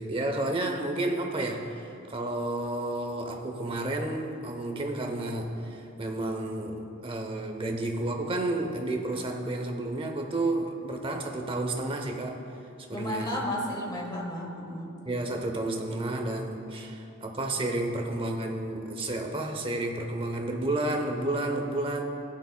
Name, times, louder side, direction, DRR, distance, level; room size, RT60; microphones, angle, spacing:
voice 1, 0.0-12.4 12.9-13.4 15.1-22.0, right 2 dB, 25° right, 3 dB, 0.7 m, -31 dB
voice 2, 12.9-15.0, left 1 dB, 20° left, -1 dB, 1.2 m, -33 dB
14.5 x 9.5 x 2.2 m, 2.8 s
head